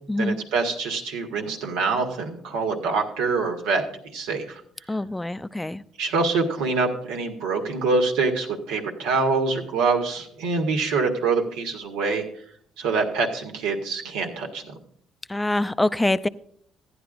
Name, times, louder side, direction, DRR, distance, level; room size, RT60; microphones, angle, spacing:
voice 1, 0.2-4.6 6.0-12.2 12.8-14.6, right 4 dB, 85° right, 3 dB, 1.7 m, -25 dB
voice 2, 4.9-5.8 15.3-16.3, left 1 dB, 10° left, 14 dB, 0.5 m, -24 dB
15.0 x 10.0 x 2.5 m, 0.64 s
supercardioid pair, 70°, 0 cm